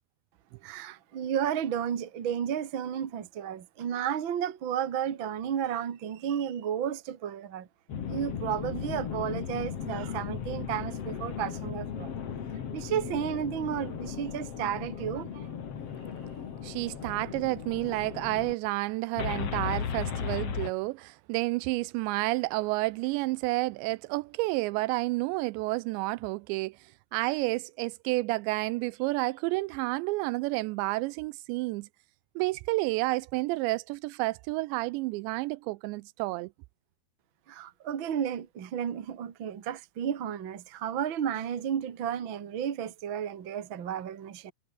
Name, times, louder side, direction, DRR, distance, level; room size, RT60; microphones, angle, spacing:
voice 1, 0.6-7.7 8.0-12.1 12.7-15.5 37.5-44.5, right 9 dB, 65° right, 1.2 m, -32 dB
sound 1, 7.9-18.5 19.2-20.7, left 7 dB, 45° left, 2.3 m, -36 dB
voice 2, 16.6-31.9 32.4-36.5, right 22 dB, 85° right, 2.7 m, -30 dB
omnidirectional pair, 5.3 m